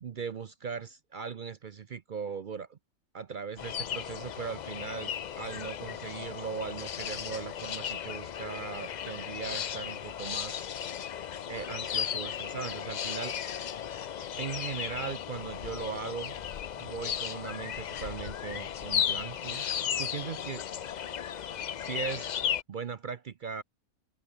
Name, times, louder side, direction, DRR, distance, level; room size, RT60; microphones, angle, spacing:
voice 1, 0.0-2.8 3.1-10.7 11.0-11.1 11.5-13.3 14.4-16.3 16.8-19.6 20.0-20.7 21.8-23.6, right 6 dB, 55° right, 0.6 m, -39 dB
sound 1, 3.6-22.6, left 9 dB, 90° left, 0.3 m, -35 dB
omnidirectional pair, 1.5 m